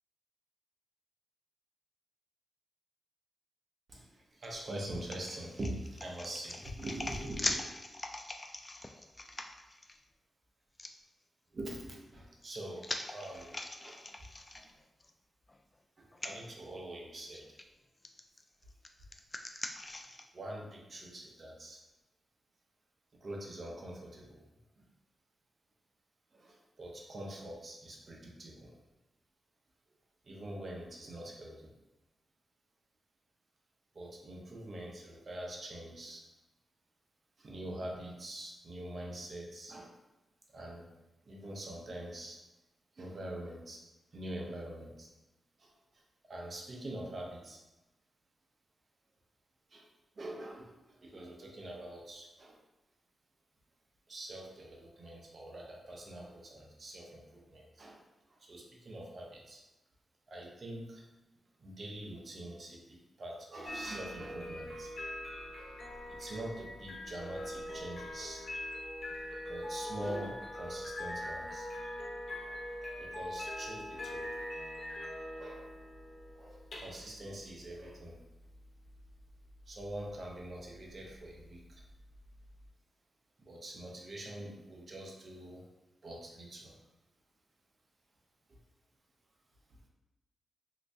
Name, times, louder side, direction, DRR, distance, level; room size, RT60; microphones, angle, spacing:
voice 1, 3.9-7.6 11.5-14.0 14.5-14.7 16.0-17.5 19.5-19.6 20.3-21.8 23.2-24.4 24.8-24.9 26.3-28.7 30.2-31.7 33.9-36.2 37.4-39.9 40.5-40.9 41.3-42.4 43.0-43.8 44.1-45.1 45.6-47.6 49.7-49.9 50.2-52.6 54.1-58.0 58.3-59.6 60.3-61.0 61.6-65.0 66.1-68.4 69.5-71.7 72.4-72.6 72.9-74.4 75.4-75.7 76.3-78.2 79.7-81.8 83.4-85.6 86.0-86.8 88.5-88.6 89.7-89.8, right 1 dB, 50° right, -1 dB, 0.8 m, -44 dB
sound 1, 4.4-10.0 10.8-10.9 12.1-15.1 15.5-15.6 16.1-16.3 17.3-17.6 18.0-20.3, left 2 dB, 25° left, 0.3 m, -42 dB
sound 2, 63.7-82.7, left 1 dB, 60° left, 0.8 m, -43 dB
3.2 x 2.9 x 2.7 m, 1.0 s
cardioid pair, 70°, 0 cm